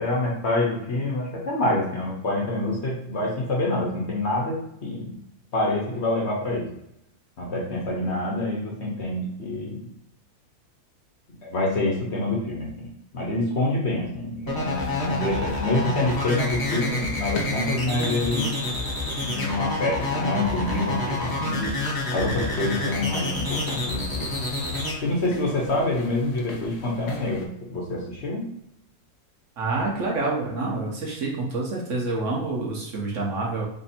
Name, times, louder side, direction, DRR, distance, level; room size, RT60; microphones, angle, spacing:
voice 1, 0.0-5.1 5.5-6.7 7.4-9.9 11.4-18.5 19.2-21.8 22.1-24.3 25.0-28.5, left 2 dB, 50° left, -3 dB, 1.1 m, -26 dB
sound 1, 14.5-24.9, left 2 dB, 15° left, 0.9 m, -28 dB
sound 2, 14.7-27.5, left 3 dB, 85° left, 1.2 m, -40 dB
voice 2, 29.6-33.6, right 3 dB, 60° right, -2 dB, 1.1 m, -27 dB
3.4 x 2.6 x 4.1 m, 0.77 s
omnidirectional pair, 1.6 m